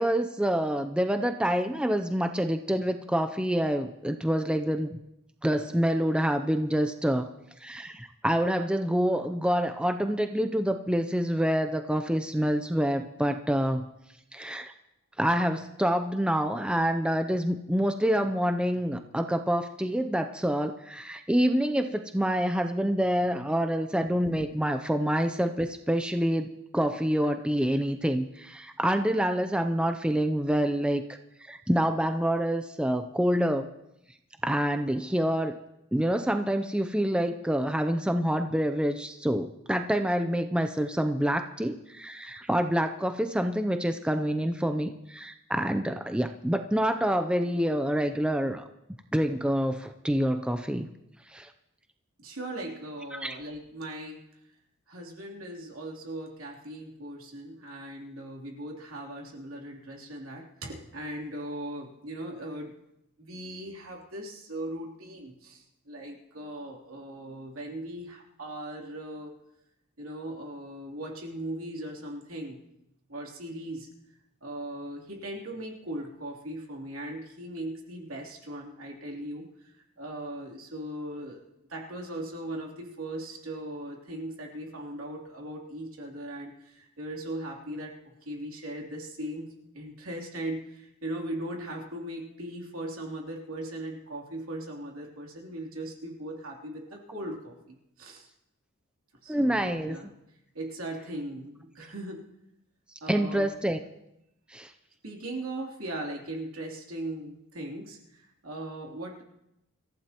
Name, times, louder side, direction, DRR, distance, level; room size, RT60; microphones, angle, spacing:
voice 1, 0.0-5.0 5.4-7.3 7.6-13.9 14.3-14.7 15.2-31.0 31.5-33.7 34.4-35.5 35.9-48.7 49.1-50.9 51.3-51.5 53.1-53.3 99.3-100.0 103.1-103.8 104.5-104.7, equal, 5° right, 7 dB, 0.5 m, -27 dB
voice 2, 52.2-54.3 54.9-62.7 63.2-69.3 70.0-72.6 73.1-73.9 74.4-81.4 81.7-98.3 99.2-100.1 100.5-102.2 103.0-103.5 105.0-109.2, right 1 dB, 70° right, -1 dB, 3.1 m, -39 dB
26.0 x 15.0 x 3.0 m, 0.85 s
head